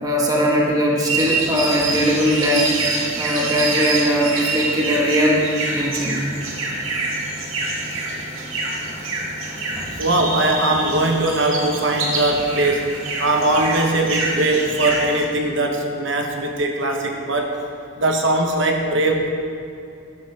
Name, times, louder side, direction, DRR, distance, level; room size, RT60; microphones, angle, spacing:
voice 1, 0.0-2.7 3.2-5.4 5.7-6.3 9.7-10.0, equal, 20° right, -2 dB, 1.4 m, -20 dB
sound 1, 1.0-15.2, right 3 dB, 90° right, 2.0 m, -26 dB
voice 2, 10.0-12.9 13.2-17.5 18.0-19.3, right 2 dB, 70° right, 2 dB, 1.1 m, -20 dB
14.0 x 11.5 x 3.5 m, 2.7 s
head